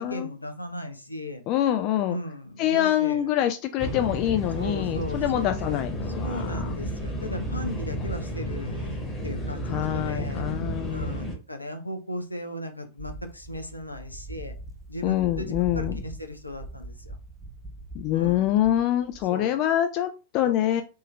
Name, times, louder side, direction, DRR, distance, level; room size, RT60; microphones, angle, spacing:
voice 1, 0.0-1.4 2.1-3.3 4.6-5.9 6.2-10.4 10.9-14.5 14.9-17.2 18.1-18.5 19.3-19.6 20.4-20.8, left 1 dB, 85° left, 6 dB, 0.6 m, -37 dB
voice 2, 1.5-2.2 2.6-6.7 9.6-11.2 15.0-16.0 17.9-20.8, left 12 dB, 40° left, 8 dB, 0.3 m, -25 dB
sound 1, 3.8-11.3, equal, 20° left, 1.3 m, -32 dB
sound 2, 13.0-19.3, right 1 dB, 10° right, 0.9 m, -41 dB
3.6 x 2.7 x 3.2 m, 0.33 s
figure-of-eight pair, 90°, 0 cm